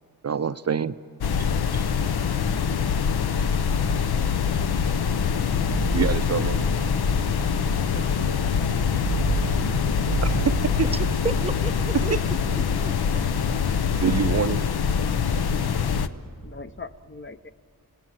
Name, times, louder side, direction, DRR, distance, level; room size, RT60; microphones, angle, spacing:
voice 1, 0.2-1.0 1.4-1.9 5.9-6.6 10.2-10.9 11.9-12.2 14.0-14.6, right 7 dB, 45° right, 11 dB, 0.5 m, -26 dB
sound 1, 1.2-16.1, left 6 dB, 80° left, 0.7 m, -24 dB
sound 2, 5.7-11.5, right 6 dB, 70° right, 0.9 m, -32 dB
voice 2, 7.8-9.4 16.4-17.5, left 4 dB, 30° left, 10 dB, 0.7 m, -42 dB
voice 3, 11.2-13.2 14.0-14.1, right 3 dB, 15° right, 12 dB, 0.8 m, -33 dB
27.5 x 18.5 x 7.6 m, 2.3 s
cardioid pair, 50°, 38 cm